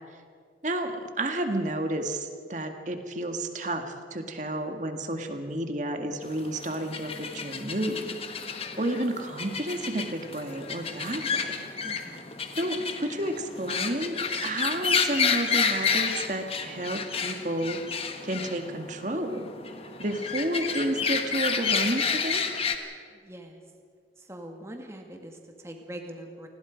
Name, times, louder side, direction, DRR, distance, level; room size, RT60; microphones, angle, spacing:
voice 1, 0.6-8.2 8.8-11.6 12.6-17.8 18.2-19.5 20.0-22.4, right 1 dB, 40° right, 5 dB, 1.8 m, -31 dB
sound 1, 6.3-22.8, left 6 dB, 30° left, 1.4 m, -30 dB
voice 2, 11.8-12.4 23.1-23.6 24.2-26.5, right 1 dB, 15° right, 3 dB, 1.9 m, -43 dB
28.5 x 20.0 x 5.2 m, 2.1 s
head